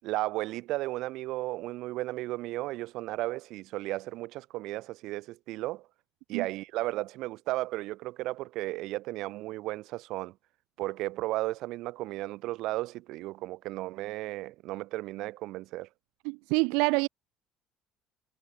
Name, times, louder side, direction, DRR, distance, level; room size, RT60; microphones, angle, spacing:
voice 1, 0.0-5.9 6.3-10.4 10.8-15.9, right 18 dB, 70° right, 6.2 m, -34 dB
voice 2, 16.3-17.1, right 32 dB, 90° right, 2.0 m, -26 dB
cardioid pair, 130°, 0 cm